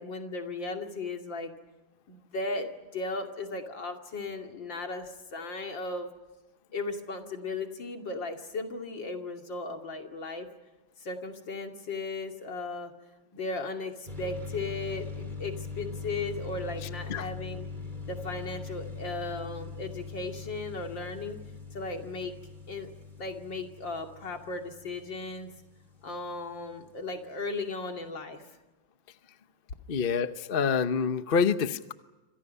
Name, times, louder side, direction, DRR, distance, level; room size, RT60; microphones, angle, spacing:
voice 1, 0.0-1.5 2.1-6.1 6.7-10.5 11.0-12.9 13.3-17.7 18.1-21.4 21.7-22.3 22.7-22.9 23.2-25.5 26.0-28.6, left 3 dB, 70° left, 3 dB, 3.3 m, -36 dB
sound 1, 14.1-26.5, left 4 dB, 25° right, 3.2 m, -41 dB
voice 2, 29.9-31.9, left 6 dB, 40° left, 10 dB, 0.8 m, -27 dB
28.5 x 26.0 x 5.5 m, 1.1 s
omnidirectional pair, 2.1 m